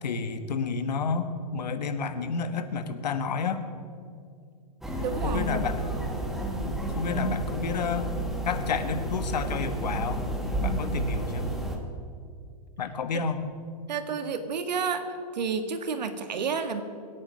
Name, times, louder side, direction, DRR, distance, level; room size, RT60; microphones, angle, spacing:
voice 1, 0.0-3.6 5.2-5.8 6.6-8.1 8.4-10.3 10.6-11.5 12.8-13.4, left 5 dB, 80° left, 9 dB, 1.5 m, -30 dB
sound 1, 4.8-11.8, right 1 dB, ahead, 1.0 m, -31 dB
voice 2, 5.0-5.7 13.9-15.1 15.3-16.8, right 5 dB, 90° right, 8 dB, 1.8 m, -30 dB
24.5 x 8.7 x 6.3 m, 2.3 s
hypercardioid pair, 165°, 21 cm